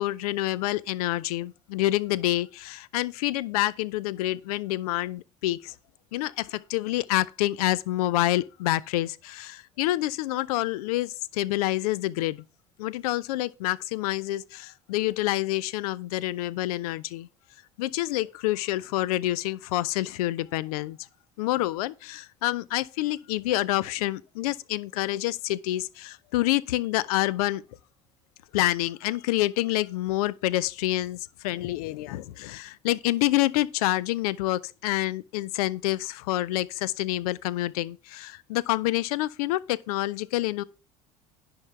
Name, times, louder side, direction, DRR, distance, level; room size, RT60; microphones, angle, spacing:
voice 1, 0.0-5.7 6.1-12.4 12.8-17.3 17.8-21.0 21.4-27.6 28.5-40.6, left 16 dB, 70° left, 0.6 m, -27 dB
10.5 x 3.8 x 6.7 m
figure-of-eight pair, 65°, 20 cm